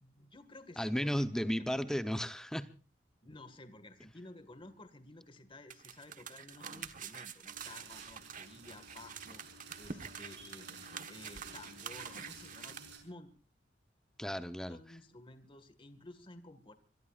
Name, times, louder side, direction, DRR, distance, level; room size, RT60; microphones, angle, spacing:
voice 1, 0.0-2.0 3.2-9.4 9.8-10.7 11.1-13.3 14.7-16.7, left 2 dB, 30° left, 1.8 m, -53 dB
voice 2, 0.8-2.7 14.2-14.8, equal, 5° left, 0.9 m, -34 dB
sound 1, 5.7-12.8, right 7 dB, 45° right, 1.4 m, -47 dB
sound 2, 7.5-13.0, right 3 dB, 70° right, 5.6 m, -53 dB
25.0 x 22.0 x 2.5 m
head